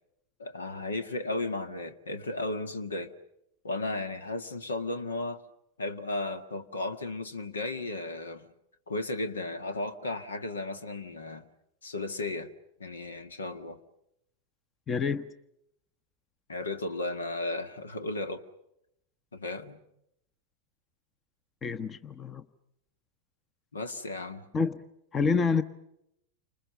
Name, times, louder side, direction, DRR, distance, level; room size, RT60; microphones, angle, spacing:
voice 1, 0.4-3.1 3.6-5.4 5.8-8.5 8.9-11.5 11.8-12.5 12.8-13.8 16.5-18.5 19.3-19.8 23.7-24.5, left 2 dB, 70° left, 1.8 m, -34 dB
voice 2, 14.9-15.3 21.6-22.4 24.5-24.8 25.1-25.6, left 5 dB, 20° left, 1.1 m, -27 dB
30.0 x 26.5 x 6.8 m
figure-of-eight pair, 90°, 0 cm